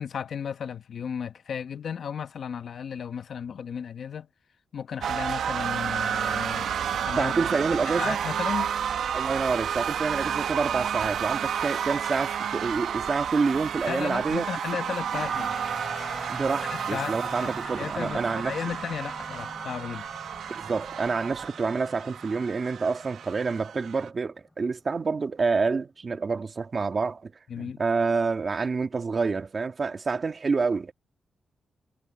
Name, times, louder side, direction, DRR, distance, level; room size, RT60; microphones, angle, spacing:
voice 1, 0.0-4.3 4.7-7.3 8.0-8.7 13.9-15.5 16.7-17.5 17.8-20.1 27.5-27.8, left 7 dB, 65° left, 1.3 m, -34 dB
sound 1, 5.0-24.1, right 8 dB, 90° right, 1.5 m, -31 dB
voice 2, 7.2-8.2 9.1-14.5 15.1-15.2 16.3-18.5 20.5-30.9, right 4 dB, 40° right, 2.0 m, -28 dB
sound 2, 15.1-24.6, left 2 dB, 15° left, 4.5 m, -43 dB
cardioid pair, 110°, 0 cm